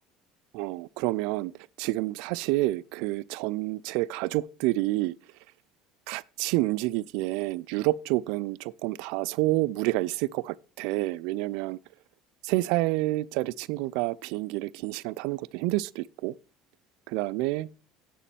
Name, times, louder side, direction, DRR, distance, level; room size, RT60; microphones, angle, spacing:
voice 1, 0.5-1.5 1.8-5.1 6.1-11.8 12.4-16.4 17.1-17.7, right 19 dB, 75° right, 0.4 m, -28 dB
8.2 x 6.8 x 7.5 m
hypercardioid pair, 80°, 0 cm